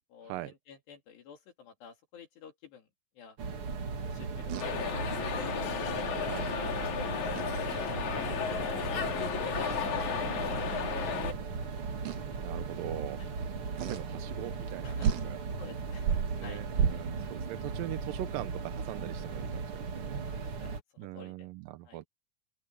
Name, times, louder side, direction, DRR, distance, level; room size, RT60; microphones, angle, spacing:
voice 1, 0.1-2.9 3.2-3.4 4.0-5.4 6.0-7.4 11.1-12.4 13.2-13.3 14.8-15.2 15.6-16.1 16.4-17.0 20.1-21.5 21.9-22.0, left 6 dB, 80° left, 5.3 m, -53 dB
sound 1, 3.4-20.8, right 4 dB, 45° right, 2.2 m, -37 dB
voice 2, 4.1-4.6 6.3-6.5 8.7-9.4 12.4-15.4 16.1-20.5 21.0-22.1, right 15 dB, 75° right, 2.2 m, -42 dB
sound 2, 4.5-4.7 7.4-8.0 8.5-8.8 9.5-9.9 11.0-11.1 12.1-12.4 13.8-14.0 14.7-14.8 15.0-15.3 16.0-17.3, right 8 dB, 60° right, 2.8 m, -32 dB
sound 3, 4.6-11.3, left 7 dB, 50° left, 3.4 m, -33 dB
open air
omnidirectional pair, 4.7 m